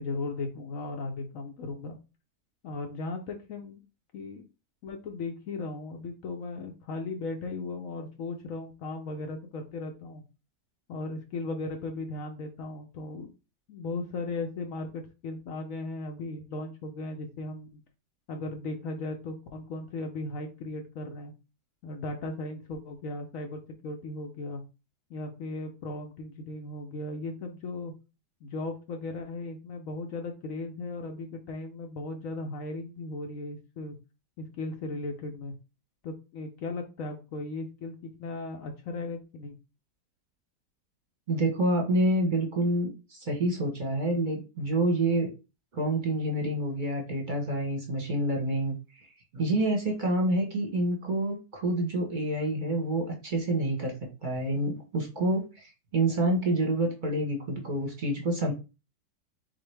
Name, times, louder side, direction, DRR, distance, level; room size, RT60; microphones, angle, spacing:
voice 1, 0.0-2.0 2.6-3.8 4.1-4.4 4.8-10.2 10.9-13.3 13.7-17.8 18.3-21.3 21.8-24.6 25.1-27.9 28.4-33.9 34.4-35.5 36.0-39.6, left 2 dB, 60° left, 4 dB, 0.9 m, -37 dB
voice 2, 41.3-45.3 45.7-49.0 49.3-53.9 54.2-58.5, right 1 dB, 35° right, 1 dB, 1.0 m, -28 dB
4.0 x 4.0 x 3.3 m, 0.29 s
omnidirectional pair, 1.9 m